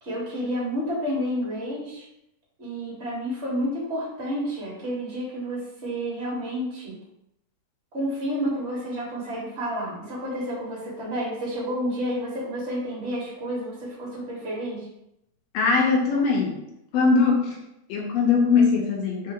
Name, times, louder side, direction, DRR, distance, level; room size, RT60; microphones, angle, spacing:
voice 1, 0.0-2.0 2.6-6.9 7.9-14.9, equal, 35° right, -6 dB, 1.0 m, -30 dB
voice 2, 15.5-16.6 16.9-17.6 17.9-19.3, left 4 dB, 80° left, 0 dB, 1.5 m, -21 dB
4.3 x 3.2 x 3.7 m, 0.83 s
omnidirectional pair, 3.5 m